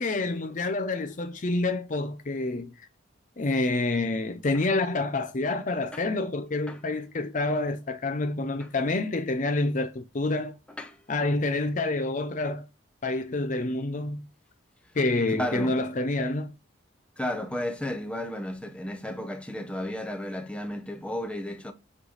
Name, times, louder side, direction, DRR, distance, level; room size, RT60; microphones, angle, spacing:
voice 1, 0.0-2.9 3.4-10.6 11.1-12.7 13.0-14.3 14.9-16.5, left 2 dB, 40° left, 0.5 m, -28 dB
voice 2, 15.3-15.8 17.2-21.7, left 1 dB, 5° left, 0.8 m, -33 dB
7.5 x 3.2 x 4.0 m
head